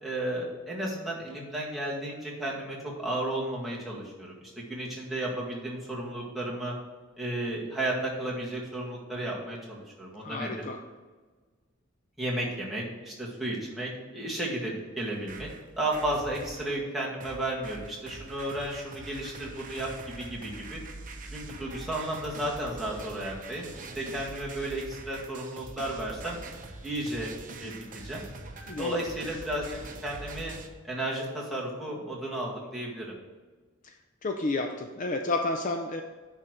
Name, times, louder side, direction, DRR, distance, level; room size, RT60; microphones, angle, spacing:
voice 1, 0.0-6.8 7.2-10.6 12.2-15.5 15.8-20.8 21.3-26.4 26.8-27.3 27.6-27.7 28.0-28.2 28.8-30.6 30.8-33.1, right 1 dB, ahead, -5 dB, 2.0 m, -33 dB
voice 2, 10.2-10.8 28.6-29.0 33.8-33.9 34.2-36.0, left 2 dB, 40° left, 4 dB, 0.5 m, -31 dB
sound 1, 15.0-16.7 17.2-30.7, right 3 dB, 40° right, 0.9 m, -44 dB
10.0 x 4.1 x 6.4 m, 1.4 s
head